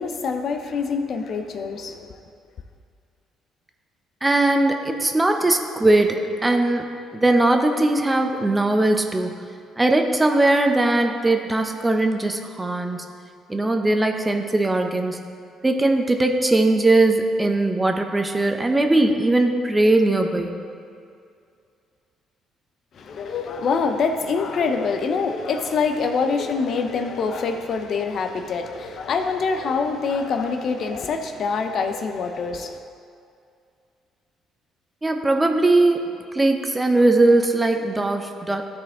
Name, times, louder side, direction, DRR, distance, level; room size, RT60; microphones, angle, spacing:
voice 1, 0.0-2.1 23.0-32.8, left 5 dB, 60° left, 6 dB, 0.6 m, -25 dB
voice 2, 4.2-6.8 7.1-9.3 9.8-13.0 13.5-15.2 15.6-20.6 35.0-38.6, right 2 dB, 15° right, 4 dB, 0.8 m, -20 dB
13.0 x 4.4 x 3.7 m, 2.4 s
supercardioid pair, 70°, 0 cm